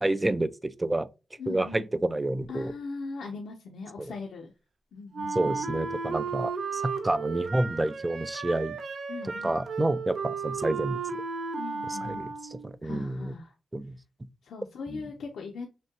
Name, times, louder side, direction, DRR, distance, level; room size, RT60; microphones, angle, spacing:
voice 1, 0.0-1.1 1.5-2.7 4.0-4.1 5.3-8.8 9.4-11.0 12.0-12.3 12.6-13.3 13.7-14.0 14.9-15.0, right 1 dB, 15° right, 0.4 m, -29 dB
voice 2, 1.4-1.9 2.5-4.5 4.9-5.6 9.1-9.5 11.6-12.3 12.8-13.5 14.4-15.7, left 4 dB, 85° left, 0.7 m, -39 dB
Wind instrument woodwind instrument, 5.1-12.7, right 5 dB, 60° right, 0.7 m, -34 dB
6.0 x 2.2 x 2.9 m
cardioid pair, 100°, 0 cm